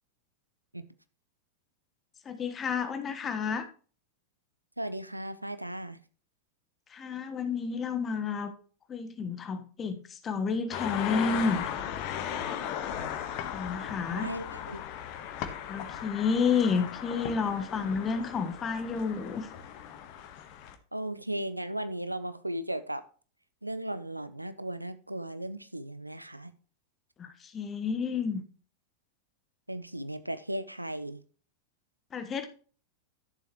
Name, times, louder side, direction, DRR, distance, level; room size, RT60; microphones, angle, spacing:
voice 1, 2.2-3.6 6.9-8.5 8.9-11.6 13.5-14.3 15.7-19.5 27.2-28.4 32.1-32.5, left 5 dB, 25° left, 9 dB, 1.3 m, -30 dB
voice 2, 4.8-6.0 14.1-14.8 20.9-23.0 23.6-26.5 29.7-31.2, right 1 dB, 85° right, 13 dB, 0.7 m, -36 dB
sound 1, 10.7-20.7, left 9 dB, 45° left, 1.2 m, -37 dB
12.0 x 7.2 x 3.0 m, 0.39 s
figure-of-eight pair, 90°, 0 cm